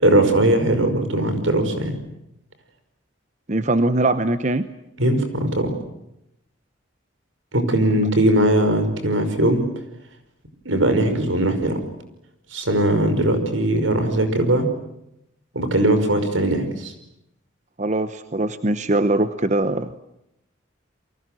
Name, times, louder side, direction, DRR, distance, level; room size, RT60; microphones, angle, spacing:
voice 1, 0.0-2.0 5.0-5.7 7.5-9.6 10.7-11.8 12.5-14.7 15.5-16.9, right 1 dB, 80° right, 9 dB, 5.4 m, -19 dB
voice 2, 3.5-4.7 7.9-8.0 17.8-19.9, right 2 dB, 35° right, 12 dB, 0.9 m, -21 dB
30.0 x 24.0 x 7.7 m, 0.83 s
head